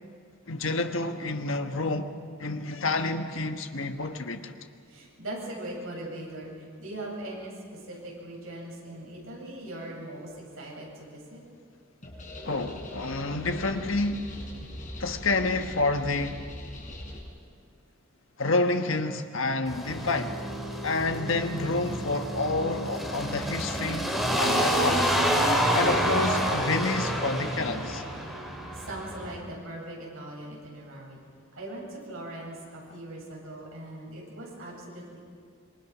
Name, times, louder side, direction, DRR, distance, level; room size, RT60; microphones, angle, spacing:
voice 1, 0.5-2.1 2.4-4.5 12.4-14.3 15.0-16.4 18.4-20.4 20.8-25.1 25.7-28.0, left 3 dB, 65° left, 1.4 m, -29 dB
voice 2, 4.9-11.4 28.7-35.2, right 1 dB, 70° right, 8.0 m, -40 dB
sound 1, 12.0-17.2, left 1 dB, 40° left, 4.7 m, -41 dB
sound 2, 19.7-29.3, equal, ahead, 4.3 m, -28 dB
26.5 x 23.5 x 6.2 m
head